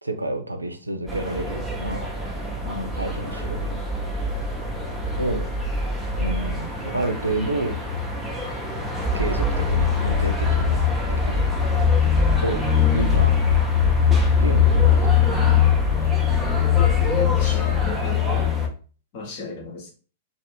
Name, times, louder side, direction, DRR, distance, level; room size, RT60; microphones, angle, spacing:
voice 1, 0.0-2.1 2.6-3.8 5.2-5.5 6.2-7.7 9.1-10.8 11.1-11.4 12.4-12.6 12.9-13.3 14.4-15.0 16.0-16.1, right 2 dB, 85° right, 6 dB, 0.4 m, -29 dB
sound 1, 1.1-18.7, left 5 dB, 5° right, 0.6 m, -22 dB
voice 2, 16.8-18.6 19.1-19.9, left 4 dB, 45° left, 1 dB, 0.9 m, -35 dB
2.4 x 2.0 x 3.3 m, 0.38 s
figure-of-eight pair, 105°, 0 cm